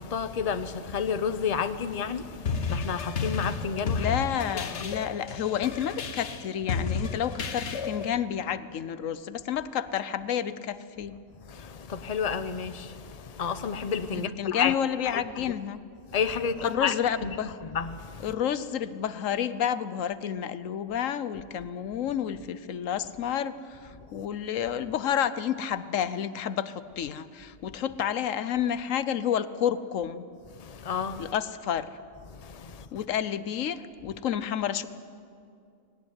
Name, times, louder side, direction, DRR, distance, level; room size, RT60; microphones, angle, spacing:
voice 1, 0.0-4.1 4.8-4.9 11.5-14.7 15.1-15.2 16.1-17.4 17.7-18.3 24.1-24.2 30.6-31.3 32.3-32.9, left 6 dB, 35° left, 0.8 m, -31 dB
sound 1, 2.5-8.1, left 4 dB, 65° left, 1.3 m, -32 dB
voice 2, 4.0-11.2 14.1-15.8 16.6-17.6 18.2-30.3 31.2-31.9 32.9-34.9, left 9 dB, 90° left, 1.2 m, -30 dB
20.0 x 18.0 x 9.6 m
omnidirectional pair, 1.3 m